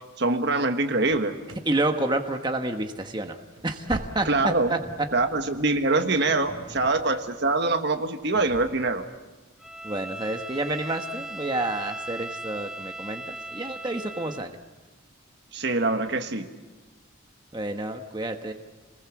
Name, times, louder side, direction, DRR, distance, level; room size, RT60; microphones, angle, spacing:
voice 1, 0.2-1.3 4.2-4.7 5.1-9.0 15.5-16.5, right 3 dB, 55° right, 7 dB, 1.5 m, -24 dB
sound 1, 1.0-1.8 2.0-2.5 2.8-2.9 3.4-4.6 4.9-5.0 5.6-5.7, right 1 dB, 90° right, 3.0 m, -41 dB
voice 2, 1.7-3.4 3.6-4.8 9.8-14.5 17.5-18.5, right 2 dB, 20° right, 5 dB, 1.3 m, -29 dB
sound 2, 3.7-9.0, equal, 80° left, 5.4 m, -49 dB
Bowed string instrument, 9.6-14.5, right 1 dB, ahead, 0.7 m, -38 dB
27.5 x 20.5 x 7.3 m, 1.2 s
head